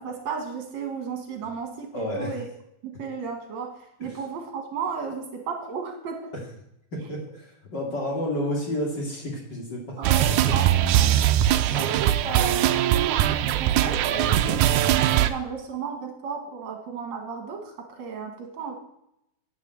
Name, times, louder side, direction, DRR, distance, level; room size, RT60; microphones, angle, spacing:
voice 1, 0.0-2.4 2.8-6.3 10.0-11.2 11.7-14.0 14.4-18.8, right 5 dB, 65° right, 3 dB, 3.2 m, -34 dB
voice 2, 1.9-2.3 4.0-4.1 6.9-10.0 11.5-11.8 14.1-14.7, left 1 dB, 35° left, -1 dB, 3.1 m, -31 dB
sound 1, 10.0-15.3, right 12 dB, 80° right, 2.1 m, -21 dB
9.7 x 9.6 x 8.0 m, 0.78 s
omnidirectional pair, 3.5 m